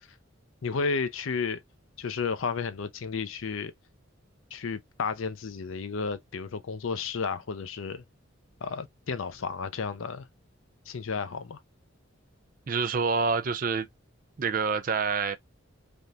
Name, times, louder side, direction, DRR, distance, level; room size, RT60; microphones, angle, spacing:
voice 1, 0.6-1.6 2.0-3.7 4.5-8.0 8.6-10.3 10.9-11.6, left 5 dB, 75° left, 0.5 m, -32 dB
voice 2, 12.7-13.9 14.4-15.4, right 5 dB, 40° right, 0.4 m, -27 dB
3.5 x 2.8 x 2.4 m
head